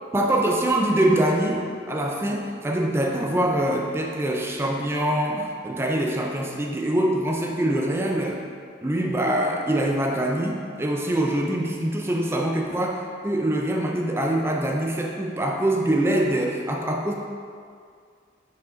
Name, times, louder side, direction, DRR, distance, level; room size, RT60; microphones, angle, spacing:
voice 1, 0.1-8.4 8.8-17.1, right 1 dB, 15° right, 0 dB, 0.4 m, -24 dB
5.5 x 4.9 x 3.8 m, 2.2 s
head